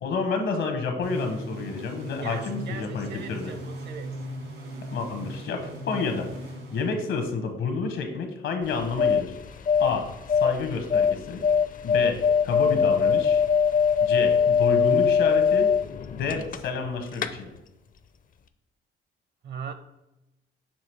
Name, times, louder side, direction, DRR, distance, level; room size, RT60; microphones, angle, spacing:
voice 1, 0.0-3.5 4.9-6.3 6.7-9.4 9.8-10.1 10.4-11.4 11.8-13.4 14.0-15.7 16.1-17.5, left 4 dB, 75° left, 6 dB, 1.1 m, -29 dB
sound 1, 1.0-7.5, equal, 80° right, 2.2 m, -38 dB
voice 2, 2.2-4.3 19.4-19.7, right 6 dB, 60° right, 9 dB, 0.8 m, -39 dB
sound 2, 8.6-16.9 17.1-17.3, left 6 dB, 45° left, 0.5 m, -22 dB
7.1 x 2.9 x 4.6 m, 0.95 s
cardioid pair, 90°, 20 cm